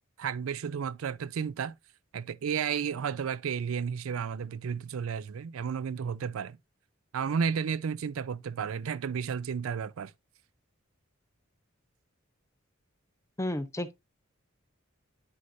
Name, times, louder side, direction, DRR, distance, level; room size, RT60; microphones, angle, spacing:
voice 1, 0.2-1.8 2.1-6.6 7.1-10.1, right 6 dB, 90° right, 0.4 m, -32 dB
voice 2, 13.4-13.9, left 1 dB, 15° left, 0.7 m, -32 dB
9.7 x 6.3 x 2.6 m
head